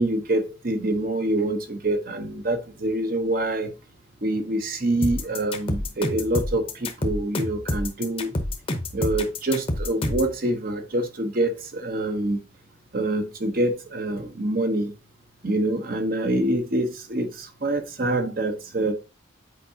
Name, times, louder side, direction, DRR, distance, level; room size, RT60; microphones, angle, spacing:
voice 1, 0.0-3.7 4.2-8.3 8.9-12.4 12.9-14.9 15.4-18.9, right 1 dB, 45° right, 0.9 m, -26 dB
sound 1, 5.0-10.3, left 1 dB, 30° left, 0.8 m, -28 dB
8.2 x 4.7 x 2.8 m
head